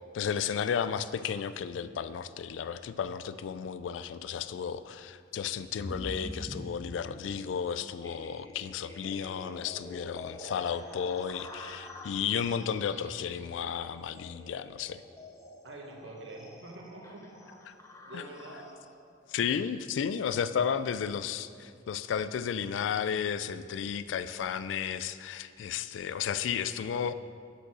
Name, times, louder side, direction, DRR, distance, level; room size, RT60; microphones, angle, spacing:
voice 1, 0.1-15.0 18.1-18.2 19.3-27.1, left 7 dB, 75° left, 14 dB, 0.3 m, -33 dB
sound 1, 5.8-19.9, left 1 dB, 15° left, 0.7 m, -46 dB
voice 2, 15.6-17.2 18.1-18.7, right 2 dB, 70° right, 0 dB, 1.2 m, -45 dB
6.4 x 5.3 x 6.1 m, 2.2 s
head